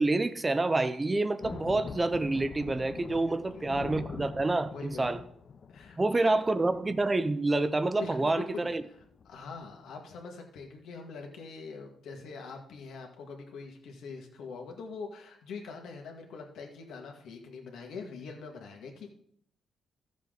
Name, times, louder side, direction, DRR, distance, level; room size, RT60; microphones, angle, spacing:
voice 1, 0.0-5.2 6.0-8.8, right 2 dB, 15° right, 0.5 m, -28 dB
sound 1, 1.4-7.2 7.5-7.7 8.1-8.3 8.6-8.7 9.0-9.6, left 5 dB, 40° left, 0.5 m, -43 dB
voice 2, 3.2-3.7 4.7-5.1 5.7-6.3 8.0-9.0 9.3-19.1, left 4 dB, 80° left, 1.9 m, -43 dB
14.0 x 7.3 x 3.9 m
cardioid pair, 155°, 0 cm